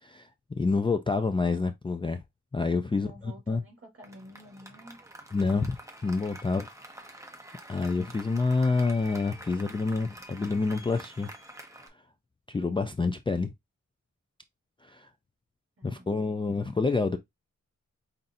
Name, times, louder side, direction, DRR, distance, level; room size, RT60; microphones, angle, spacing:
voice 1, 0.0-2.2 2.5-3.6 5.3-5.8 6.0-6.7 7.7-11.3 11.7-11.9 12.5-13.5 14.8-15.1 15.8-17.2, left 3 dB, 20° left, 0.3 m, -28 dB
voice 2, 2.9-5.0 15.8-16.2, equal, 50° right, 3.3 m, -50 dB
Applause, 4.0-11.9, right 1 dB, 10° right, 0.9 m, -47 dB
5.5 x 2.6 x 2.6 m
wide cardioid pair, 125°, 30 cm